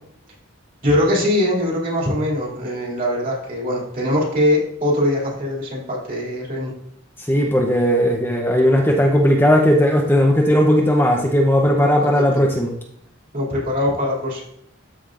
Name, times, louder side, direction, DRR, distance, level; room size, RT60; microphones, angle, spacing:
voice 1, 0.8-6.7 11.8-12.2 13.3-14.4, left 1 dB, 45° right, -3 dB, 2.7 m, -22 dB
voice 2, 7.3-12.7, equal, 10° left, 1 dB, 0.7 m, -16 dB
13.0 x 5.0 x 2.5 m, 0.72 s
head